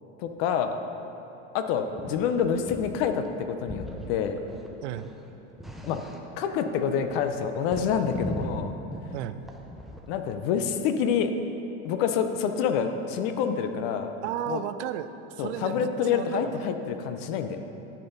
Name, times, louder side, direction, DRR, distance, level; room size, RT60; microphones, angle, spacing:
voice 1, 0.2-0.8 1.5-4.4 5.9-6.1 6.4-8.7 10.1-11.3 11.8-14.1 14.5-14.6 15.4-17.6, left 7 dB, 60° left, 8 dB, 0.7 m, -27 dB
sound 1, 1.9-2.2 2.4-3.0 3.3-4.1 4.4-6.5 6.8-10.2, equal, ahead, 0.4 m, -39 dB
voice 2, 4.8-5.1 9.1-9.4 14.2-16.6, right 11 dB, 85° right, 11 dB, 0.6 m, -34 dB
10.5 x 8.0 x 4.0 m, 3.0 s
supercardioid pair, 140°, 34 cm